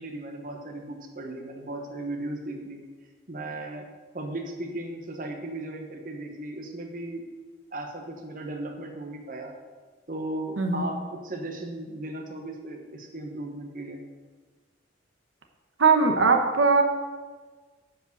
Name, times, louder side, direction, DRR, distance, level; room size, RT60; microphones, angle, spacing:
voice 1, 0.0-2.8 3.3-3.9 4.1-7.3 7.7-9.5 10.1-14.0, right 1 dB, 45° right, 3 dB, 1.0 m, -36 dB
voice 2, 15.8-16.8, right 4 dB, 85° right, 5 dB, 1.0 m, -20 dB
7.5 x 5.2 x 6.6 m, 1.4 s
head